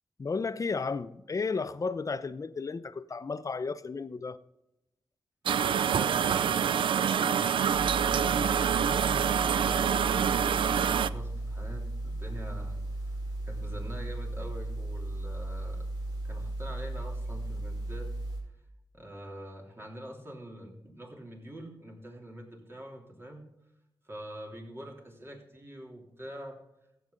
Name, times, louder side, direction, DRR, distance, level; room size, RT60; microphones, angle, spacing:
voice 1, 0.2-4.4, left 4 dB, 40° left, 14 dB, 0.6 m, -33 dB
sound 1, 5.5-11.1, right 8 dB, 80° right, 0.4 m, -26 dB
voice 2, 5.7-13.2 13.4-15.9 16.2-18.1 18.9-23.5 24.1-26.6, equal, 30° right, 0 dB, 3.3 m, -45 dB
sound 2, 7.7-18.4, right 1 dB, 60° right, 4.6 m, -36 dB
15.0 x 8.1 x 3.9 m, 0.88 s
cardioid pair, 75°, 9 cm